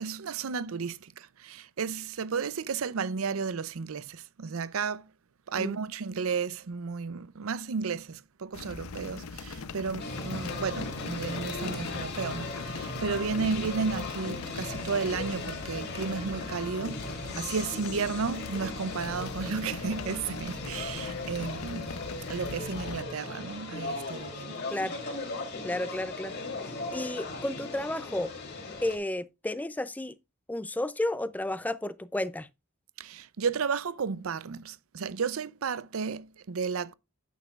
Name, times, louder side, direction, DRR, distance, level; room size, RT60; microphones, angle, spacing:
voice 1, 0.0-5.1 5.5-24.7 33.0-36.9, right 5 dB, 75° right, 0.5 m, -33 dB
sound 1, 8.5-23.0, left 4 dB, 85° left, 0.7 m, -41 dB
sound 2, 10.0-29.0, left 3 dB, 50° left, 2.7 m, -38 dB
voice 2, 25.6-26.3 26.9-28.3 28.8-30.1 30.5-32.5, left 1 dB, 10° left, 0.4 m, -32 dB
9.3 x 9.0 x 2.4 m
head